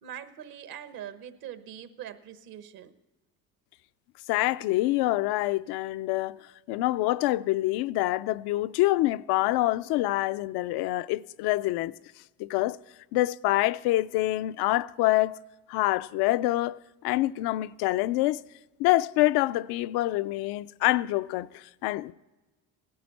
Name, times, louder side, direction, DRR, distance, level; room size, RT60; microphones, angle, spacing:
voice 1, 0.0-2.9, right 10 dB, 70° right, 1.2 m, -42 dB
voice 2, 4.3-6.4 6.7-11.9 12.4-12.8 13.1-15.4 15.7-16.8 17.0-18.4 18.8-22.1, left 17 dB, 80° left, 0.5 m, -26 dB
17.0 x 12.5 x 4.1 m
cardioid pair, 110°, 37 cm